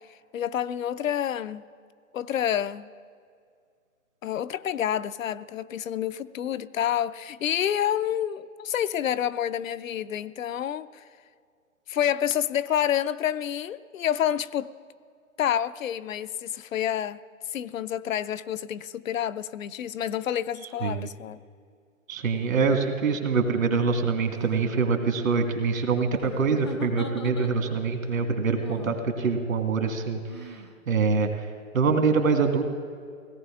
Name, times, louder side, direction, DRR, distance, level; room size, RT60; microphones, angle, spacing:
voice 1, 0.3-1.6 2.1-2.9 4.2-11.0 11.9-14.7 15.4-17.2 17.5-21.4, left 10 dB, 70° left, 0.6 m, -28 dB
sound 1, 20.7-20.9 22.2-23.1 24.2-24.8 26.2-27.9 28.6-29.1 30.3-30.7, left 1 dB, 20° left, 0.4 m, -42 dB
voice 2, 22.1-31.5 31.7-32.6, right 5 dB, 75° right, 1.9 m, -25 dB
17.5 x 16.0 x 3.7 m
hypercardioid pair, 150°, 41 cm